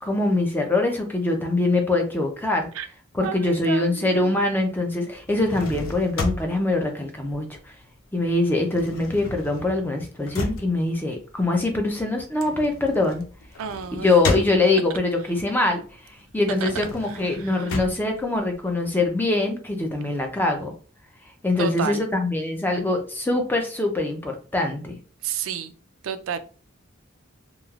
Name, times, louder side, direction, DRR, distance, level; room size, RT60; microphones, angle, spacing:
voice 1, 0.0-2.7 3.1-7.5 8.1-13.2 13.9-15.8 16.3-20.7 21.4-25.0, left 2 dB, 10° left, 0.4 m, -23 dB
voice 2, 3.2-4.3 13.6-14.1 16.6-16.7 17.0-17.8 21.6-22.0 25.2-25.7 26.0-26.4, right 7 dB, 70° right, 0.3 m, -31 dB
sound 1, 5.2-8.0 8.3-15.1 15.5-19.1, left 2 dB, 70° left, 0.5 m, -33 dB
3.0 x 2.3 x 2.3 m
head